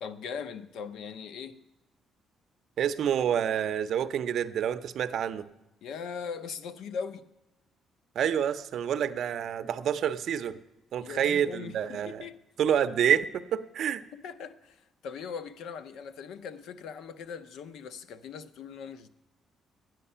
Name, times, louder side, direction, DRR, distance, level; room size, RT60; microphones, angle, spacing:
voice 1, 0.0-1.6 5.8-7.3 11.0-12.4 14.2-19.1, left 6 dB, 85° left, 0.6 m, -40 dB
voice 2, 2.8-5.5 8.1-10.6 10.9-12.3 12.6-14.0, right 9 dB, 60° right, 0.5 m, -28 dB
12.0 x 9.2 x 5.6 m
cardioid pair, 150°, 0 cm